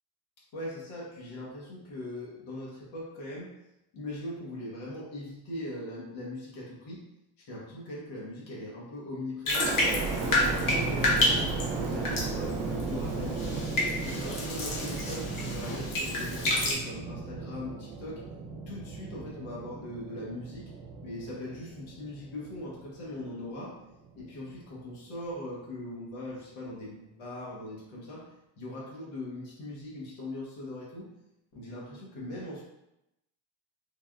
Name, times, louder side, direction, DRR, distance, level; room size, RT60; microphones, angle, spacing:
voice 1, 0.5-3.5 3.9-7.0 7.4-9.7 10.1-11.5 11.8-13.7 14.0-18.2 18.7-20.7 21.0-23.8 24.2-31.1 31.5-32.6, left 1 dB, 90° left, -5 dB, 1.0 m, -40 dB
Bathtub (filling or washing), 9.5-16.7, left 1 dB, 45° left, 0.8 m, -30 dB
sound 1, 9.5-23.5 24.0-24.8, right 4 dB, 80° right, 0.6 m, -35 dB
3.4 x 2.3 x 2.3 m, 0.88 s
cardioid pair, 115°, 46 cm